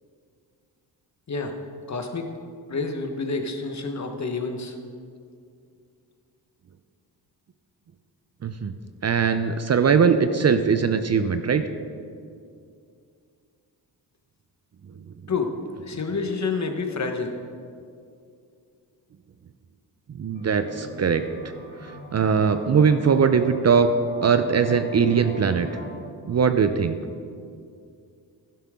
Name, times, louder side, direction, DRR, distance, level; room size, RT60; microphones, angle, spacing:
voice 1, 1.9-2.3 2.7-4.7 15.3-15.5 15.8-17.3, left 4 dB, 40° left, 5 dB, 1.3 m, -28 dB
voice 2, 8.4-8.7 9.0-11.7 20.2-21.3 21.8-23.9 24.2-25.7 26.3-26.9, right 6 dB, 35° right, 9 dB, 0.6 m, -21 dB
sound 1, 20.3-25.9, equal, 85° left, 2.5 m, -42 dB
11.5 x 11.5 x 3.7 m, 2.4 s
cardioid pair, 70°, 44 cm